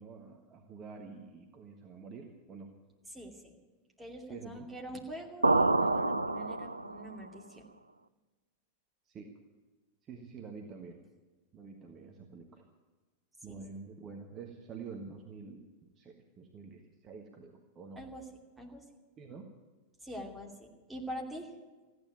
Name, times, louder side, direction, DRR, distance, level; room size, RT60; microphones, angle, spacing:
voice 1, 0.0-2.7 4.3-4.7 9.0-9.4 10.0-11.0 11.5-12.6 13.4-15.6 16.0-18.0 19.2-19.5, right 5 dB, 30° right, 2 dB, 1.4 m, -48 dB
voice 2, 3.1-3.5 4.0-7.6 13.5-13.6 18.0-18.3 18.6-18.9 20.0-21.6, equal, 5° right, 0 dB, 2.7 m, -44 dB
sound 1, 5.4-7.2, right 2 dB, 80° right, 0.4 m, -27 dB
15.0 x 9.7 x 9.4 m, 1.3 s
figure-of-eight pair, 90°, 0 cm